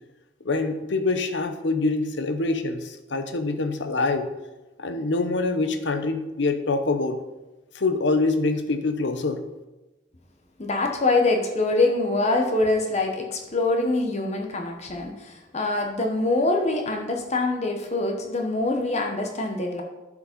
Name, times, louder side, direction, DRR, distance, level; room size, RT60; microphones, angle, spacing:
voice 1, 0.4-4.3 4.8-7.2 7.7-9.4, left 3 dB, 65° left, 8 dB, 0.8 m, -25 dB
voice 2, 10.6-19.8, left 2 dB, 35° left, 3 dB, 0.9 m, -24 dB
11.0 x 5.0 x 5.2 m, 1.1 s
head